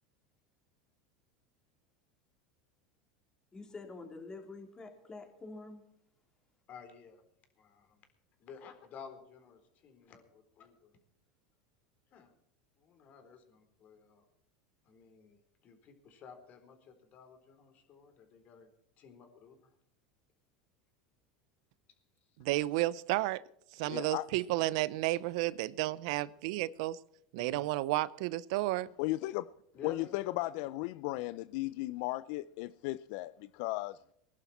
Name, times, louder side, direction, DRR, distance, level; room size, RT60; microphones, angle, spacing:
voice 1, 3.5-5.8, left 3 dB, 20° left, 3.5 m, -47 dB
voice 2, 6.7-7.2 7.6-8.1 8.4-11.0 12.1-12.3 12.8-14.3 14.8-18.7 19.0-19.7 27.4-27.6 29.7-30.6, left 6 dB, 45° left, 3.9 m, -54 dB
voice 3, 22.4-23.4 23.7-27.0 27.3-28.9, right 17 dB, 70° right, 0.6 m, -32 dB
voice 4, 23.8-24.3 29.0-29.5 29.8-34.0, left 18 dB, 65° left, 0.4 m, -36 dB
21.0 x 11.5 x 4.3 m
hypercardioid pair, 100°, 4 cm